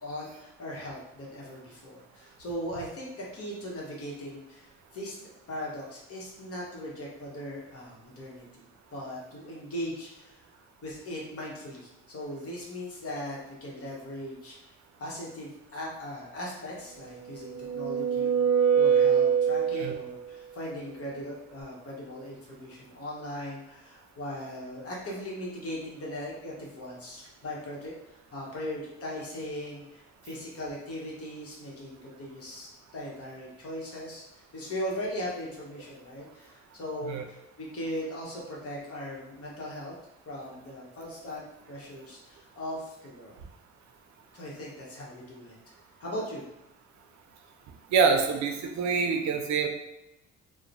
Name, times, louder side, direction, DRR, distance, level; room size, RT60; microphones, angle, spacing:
voice 1, 0.0-5.1 5.5-8.6 8.9-10.4 10.8-14.7 15.0-18.5 18.7-32.7 32.9-39.9 40.3-43.4 44.3-45.5 46.0-46.4, equal, 50° left, -4 dB, 1.0 m, -39 dB
sound 1, 17.1-20.2, right 7 dB, 15° right, 1.0 m, -24 dB
voice 2, 47.9-49.7, right 5 dB, 65° right, 5 dB, 0.5 m, -25 dB
2.9 x 2.1 x 2.6 m, 0.93 s
cardioid pair, 90°, 30 cm